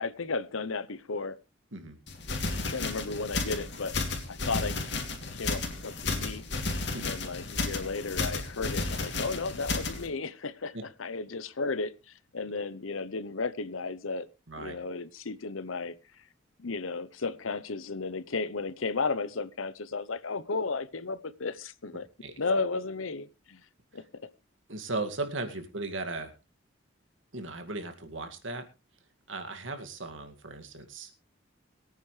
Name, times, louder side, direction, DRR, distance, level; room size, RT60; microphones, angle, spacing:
voice 1, 0.0-1.4 2.5-4.0 4.3-4.8 5.3-6.4 7.0-10.7 11.0-11.9 12.3-14.3 14.6-15.9 16.6-22.1 22.4-23.6 23.9-24.3, left 4 dB, 85° left, 16 dB, 0.9 m, -34 dB
sound 1, 2.1-10.1, left 3 dB, 60° left, 2.8 m, -33 dB
voice 2, 24.7-26.3 27.3-28.6 29.3-31.1, right 2 dB, 75° right, 6 dB, 2.3 m, -37 dB
22.5 x 9.3 x 3.3 m, 0.29 s
head